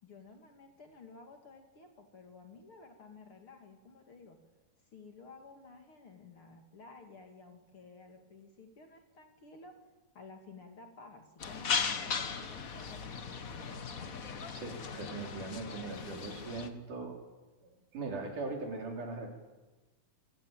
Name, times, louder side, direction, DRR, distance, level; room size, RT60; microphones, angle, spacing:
voice 1, 0.0-4.4 4.9-9.8 10.1-13.8, left 4 dB, 45° left, 4 dB, 2.7 m, -53 dB
sound 1, 11.4-16.7, left 6 dB, 90° left, 0.7 m, -37 dB
voice 2, 14.5-17.2 17.6-19.3, right 3 dB, 70° right, 2 dB, 5.1 m, -40 dB
27.0 x 16.0 x 9.0 m, 1.2 s
omnidirectional pair, 3.8 m